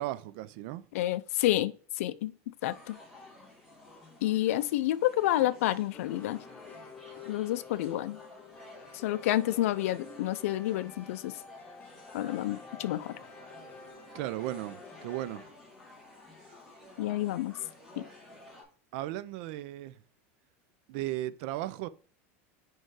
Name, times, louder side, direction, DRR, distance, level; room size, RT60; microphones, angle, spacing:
voice 1, 0.0-0.9 14.1-15.4 18.9-19.9 20.9-21.9, right 15 dB, 55° right, 0.4 m, -36 dB
voice 2, 0.9-2.3 2.6-3.0 4.2-6.4 7.3-8.2 8.9-11.3 12.1-13.1 17.0-17.6 18.0-18.1, left 14 dB, 85° left, 0.4 m, -29 dB
sound 1, 2.6-18.6, left 2 dB, ahead, 2.1 m, -53 dB
sound 2, 5.9-15.4, left 4 dB, 20° left, 0.9 m, -50 dB
4.6 x 4.5 x 4.7 m
supercardioid pair, 170°, 7 cm